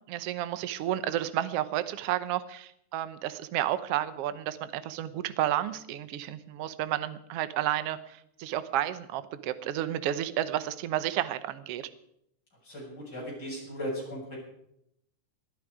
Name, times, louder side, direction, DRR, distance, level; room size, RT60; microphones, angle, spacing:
voice 1, 0.1-11.8, right 12 dB, 65° right, 12 dB, 1.7 m, -31 dB
voice 2, 12.6-14.4, equal, 30° left, -4 dB, 8.0 m, -37 dB
21.0 x 12.5 x 4.9 m, 0.76 s
omnidirectional pair, 3.4 m